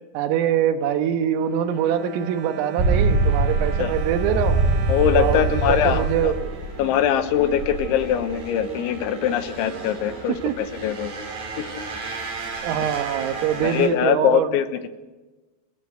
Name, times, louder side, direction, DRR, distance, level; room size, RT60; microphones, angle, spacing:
voice 1, 0.2-4.6 5.2-6.5 10.3-10.6 12.6-14.5, right 9 dB, 80° right, 8 dB, 3.9 m, -24 dB
Bowed string instrument, 1.2-7.4 8.1-8.2 8.5-8.6, right 8 dB, 65° right, 3.4 m, -39 dB
sound 1, 2.8-13.9, right 3 dB, 50° right, 5.9 m, -26 dB
voice 2, 4.9-6.3 6.8-11.1 13.6-14.9, left 9 dB, 75° left, 10 dB, 3.2 m, -22 dB
28.0 x 16.0 x 8.0 m, 1.2 s
omnidirectional pair, 5.8 m